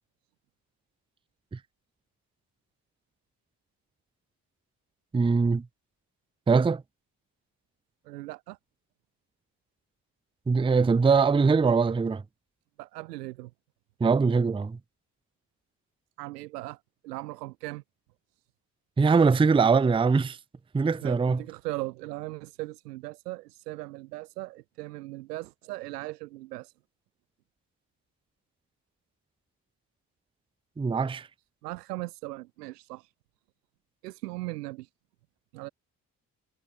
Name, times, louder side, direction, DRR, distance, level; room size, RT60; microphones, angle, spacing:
voice 1, 5.1-5.7 6.5-6.8 10.5-12.2 14.0-14.8 19.0-20.4 20.7-21.4 30.8-31.3, right 5 dB, 10° right, 0.5 m, -22 dB
voice 2, 8.0-8.6 12.8-13.5 16.2-17.8 21.0-26.7 31.6-33.1 34.0-34.9 35.5-35.7, right 19 dB, 85° right, 1.1 m, -38 dB
hypercardioid pair, 40°, 46 cm